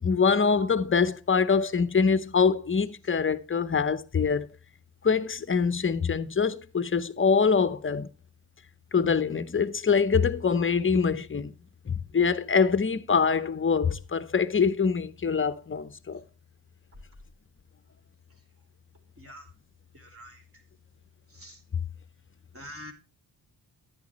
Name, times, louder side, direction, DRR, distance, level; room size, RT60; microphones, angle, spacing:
voice 1, 0.0-4.5 5.0-8.1 8.9-11.5 11.9-16.2, left 5 dB, 30° left, 0.8 m, -24 dB
voice 2, 19.9-20.4 21.3-21.6 22.5-22.9, equal, 30° right, 3.4 m, -45 dB
10.5 x 9.7 x 3.1 m
cardioid pair, 60°, 42 cm